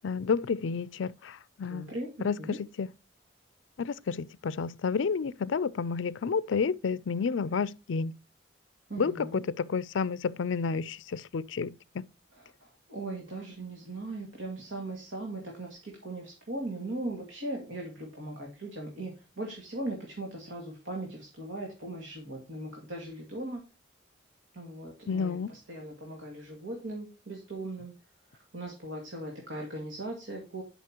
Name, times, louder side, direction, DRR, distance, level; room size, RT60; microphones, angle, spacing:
voice 1, 0.0-1.9 2.2-2.9 3.8-8.1 9.0-12.1 25.1-25.5, left 5 dB, 75° left, 0.4 m, -30 dB
voice 2, 1.7-2.6 8.9-9.4 12.3-23.6 24.5-27.9 28.3-30.6, right 2 dB, 80° right, 2.1 m, -39 dB
11.0 x 5.5 x 2.9 m
head